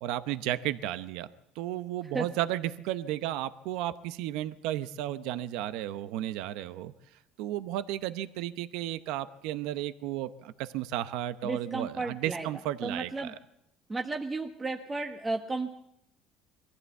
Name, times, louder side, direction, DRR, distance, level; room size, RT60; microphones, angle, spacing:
voice 1, 0.0-1.3 1.6-6.9 7.4-13.3, right 13 dB, 80° right, 13 dB, 0.8 m, -33 dB
voice 2, 11.4-12.5 12.8-13.3 13.9-15.7, right 3 dB, 20° right, 3 dB, 1.3 m, -33 dB
22.5 x 15.0 x 8.3 m, 0.79 s
cardioid pair, 110°, 0 cm